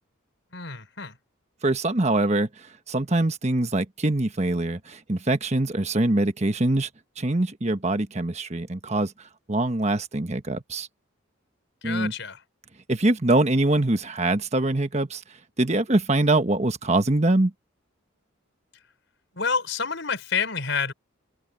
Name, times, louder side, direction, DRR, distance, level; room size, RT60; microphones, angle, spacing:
voice 1, 0.5-1.2 11.8-12.4 19.3-20.9, left 5 dB, 60° left, 6.1 m, -28 dB
voice 2, 1.6-6.9 7.2-9.1 9.5-10.9 11.8-12.1 12.9-15.2 15.6-17.5, right 2 dB, 35° right, 1.3 m, -23 dB
head